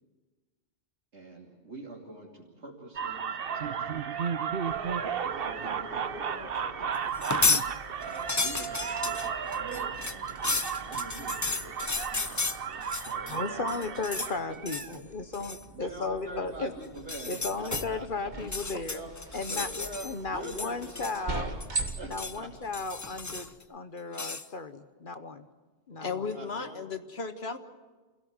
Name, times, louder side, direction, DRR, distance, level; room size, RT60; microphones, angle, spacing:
voice 1, 1.1-4.3 5.3-7.1 7.9-14.6 14.9-18.3 18.9-21.5 22.0-22.8 26.3-26.9, right 1 dB, 90° right, -5 dB, 3.3 m, -45 dB
sound 1, 3.0-14.9, right 7 dB, 60° right, 1.0 m, -34 dB
sound 2, 4.7-23.6, right 3 dB, 45° right, 1.8 m, -43 dB
sound 3, 7.1-7.7 8.0-13.4 13.7-14.3 14.6-15.0 15.3-15.6 17.0-17.9 18.4-20.1 20.4-21.3 21.6-22.4 22.7-23.6 24.1-24.5, left 3 dB, 20° left, 0.5 m, -32 dB
voice 2, 13.3-16.7 17.3-19.0 19.3-19.7 20.0-21.5 22.1-25.5 25.9-26.2, left 3 dB, 50° left, 9 dB, 1.2 m, -35 dB
voice 3, 26.0-27.6, left 5 dB, 65° left, 8 dB, 1.7 m, -35 dB
28.0 x 17.0 x 8.0 m, 1.3 s
omnidirectional pair, 1.1 m